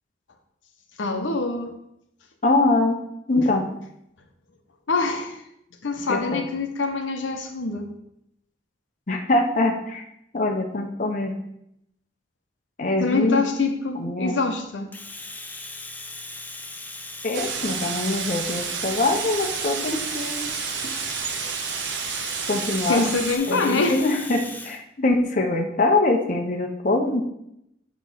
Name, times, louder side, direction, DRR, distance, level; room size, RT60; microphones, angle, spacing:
voice 1, 1.0-1.8 3.4-3.5 4.9-5.4 5.8-7.9 13.0-14.9 22.9-24.0, left 3 dB, 90° left, 6 dB, 0.8 m, -25 dB
voice 2, 2.4-3.0 3.3-3.7 6.1-6.4 9.1-10.0 10.3-11.3 12.8-13.4 13.9-14.4 17.2-20.5 22.5-23.0 23.5-27.2, left 2 dB, 40° left, 3 dB, 0.7 m, -23 dB
Domestic sounds home sounds, 14.9-24.8, left 2 dB, 10° left, 0.4 m, -38 dB
sound 1, 17.3-23.4, right 7 dB, 80° right, 0.7 m, -30 dB
7.0 x 3.1 x 5.5 m, 0.78 s
head